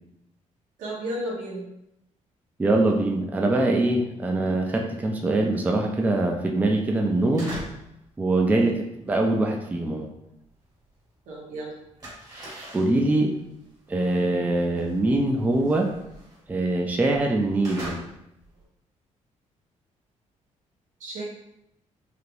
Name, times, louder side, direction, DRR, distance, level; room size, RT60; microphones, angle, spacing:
voice 1, 0.8-1.7 8.5-8.9 11.3-11.7 21.0-21.2, right 1 dB, 85° right, -4 dB, 1.1 m, -34 dB
voice 2, 2.6-7.5 8.2-10.1 12.7-13.3 13.9-15.9 16.5-18.0, right 2 dB, 10° right, 2 dB, 0.3 m, -23 dB
sound 1, 7.1-8.0 8.2-11.2 11.4-18.6, right 1 dB, 30° right, 1.1 m, -42 dB
3.3 x 2.8 x 2.5 m, 0.82 s
cardioid pair, 125°, 13 cm